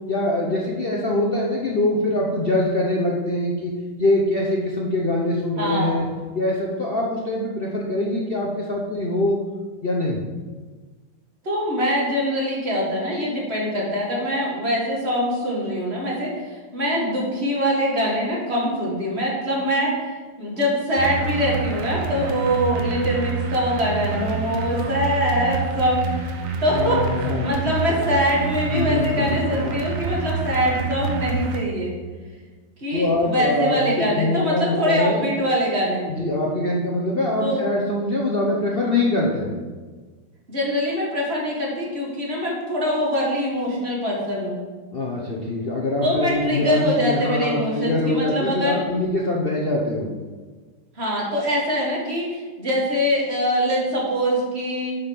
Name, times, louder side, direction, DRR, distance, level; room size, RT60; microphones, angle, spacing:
voice 1, 0.1-3.7 4.0-6.1 6.3-9.4 9.8-10.2 26.7-27.5 28.7-29.8 32.9-35.2 36.1-39.5 44.9-50.1, left 2 dB, 80° left, -3 dB, 0.5 m, -23 dB
voice 2, 5.6-6.0 11.4-26.1 26.6-27.0 27.4-31.9 32.8-36.1 37.4-37.6 40.5-44.6 46.0-48.8 51.0-55.0, equal, 30° right, -4 dB, 2.1 m, -23 dB
sound 1, 21.0-31.6, right 4 dB, 55° right, 0.9 m, -28 dB
7.6 x 5.2 x 5.9 m, 1.4 s
omnidirectional pair, 2.4 m